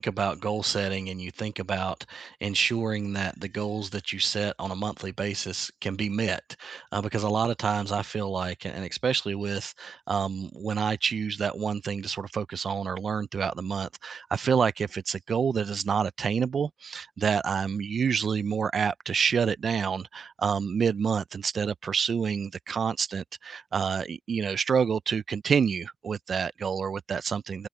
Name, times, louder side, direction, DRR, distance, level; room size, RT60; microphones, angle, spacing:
voice 1, 0.0-27.7, right 6 dB, 80° right, 0.4 m, -28 dB
open air
cardioid pair, 70°, 0 cm